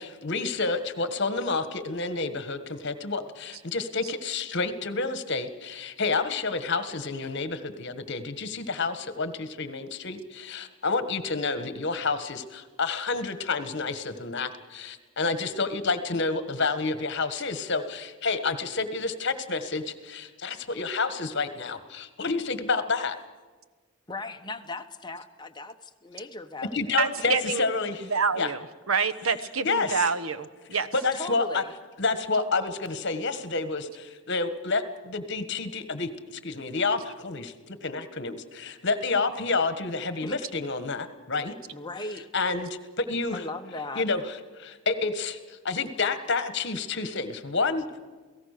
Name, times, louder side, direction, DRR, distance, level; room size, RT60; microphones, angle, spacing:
voice 1, 0.0-23.2 26.7-28.1 28.4-28.5 29.6-30.1 30.9-31.6 32.0-41.6 42.3-42.7 43.0-43.5 43.9-48.0, left 4 dB, 55° left, 11 dB, 1.6 m, -29 dB
voice 2, 24.1-27.0 31.1-31.7 40.2-40.4 41.7-42.3 43.3-44.1, left 2 dB, 20° left, 6 dB, 1.1 m, -38 dB
voice 3, 27.0-27.6 28.1-30.9, right 5 dB, 75° right, 14 dB, 1.2 m, -27 dB
29.0 x 17.5 x 6.7 m, 1.3 s
head